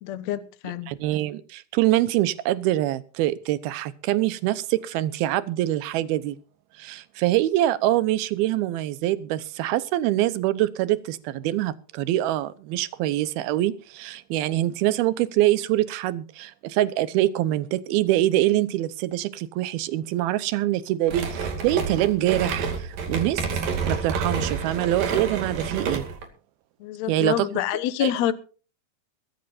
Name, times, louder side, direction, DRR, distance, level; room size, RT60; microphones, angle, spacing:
voice 1, 0.0-0.9 26.8-28.3, left 12 dB, 70° left, 1.7 m, -27 dB
voice 2, 0.9-6.4 6.8-23.4 23.9-26.0 27.1-27.5 28.0-28.1, right 14 dB, 80° right, 2.7 m, -24 dB
sound 1, 21.1-26.3, right 5 dB, 60° right, 4.0 m, -29 dB
22.0 x 14.0 x 2.6 m
omnidirectional pair, 4.6 m